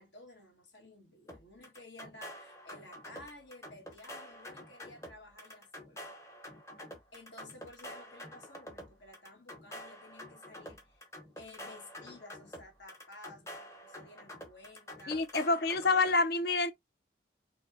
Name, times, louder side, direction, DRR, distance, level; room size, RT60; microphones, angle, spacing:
voice 1, 0.0-6.1 7.1-11.0 11.4-16.2, left 1 dB, 80° left, 1.2 m, -54 dB
sound 1, 1.3-16.1, equal, 15° left, 0.6 m, -48 dB
voice 2, 15.1-16.7, left 3 dB, 60° left, 0.5 m, -27 dB
5.1 x 2.0 x 2.3 m
head